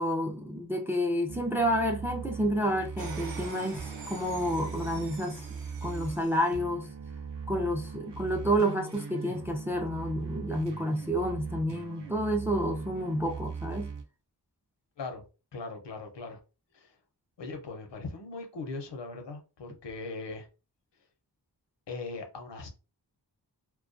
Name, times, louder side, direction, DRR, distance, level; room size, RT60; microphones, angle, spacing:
voice 1, 0.0-5.4 5.8-6.9 7.5-13.9, equal, 5° right, 0.4 m, -29 dB
sound 1, 1.3-6.2 6.5-14.0, right 5 dB, 75° right, 0.6 m, -40 dB
sound 2, 3.0-6.5, right 3 dB, 45° right, 0.9 m, -45 dB
voice 2, 15.5-16.4 16.7-16.9 17.4-20.5 21.9-22.7, left 3 dB, 75° left, 0.7 m, -39 dB
2.3 x 2.2 x 2.4 m
wide cardioid pair, 75°, 43 cm